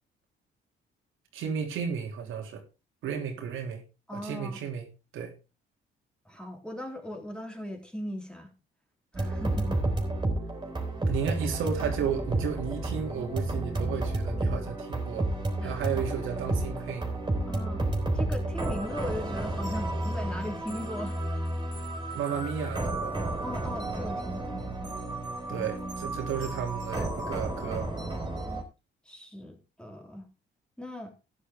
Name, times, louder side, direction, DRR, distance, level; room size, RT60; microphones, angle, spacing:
voice 1, 1.3-2.6 3.0-3.8 4.1-4.9 5.1-5.3 11.1-15.3 15.6-17.1 22.1-23.3 25.5-27.9, right 7 dB, 85° right, 3.1 m, -33 dB
voice 2, 4.1-4.6 6.2-8.5 9.1-9.8 15.6-16.0 17.5-17.8 18.1-21.2 23.4-25.0 25.5-25.7 29.0-30.3 30.8-31.1, left 1 dB, 5° left, 3.5 m, -38 dB
sound 1, 9.1-28.6, right 2 dB, 20° right, 4.3 m, -31 dB
13.0 x 10.0 x 3.6 m
cardioid pair, 90°, 20 cm